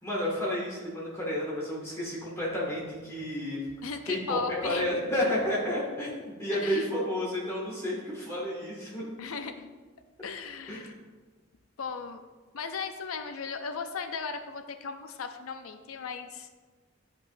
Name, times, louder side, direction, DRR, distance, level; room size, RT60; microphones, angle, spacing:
voice 1, 0.0-3.6 4.0-9.1 10.7-10.9, left 1 dB, 15° left, -6 dB, 1.9 m, -31 dB
voice 2, 3.8-4.9 6.5-6.9 9.2-9.7 10.2-10.9 11.8-12.2 12.5-16.5, left 5 dB, 90° left, 7 dB, 0.5 m, -36 dB
9.9 x 5.1 x 2.6 m, 1.3 s
head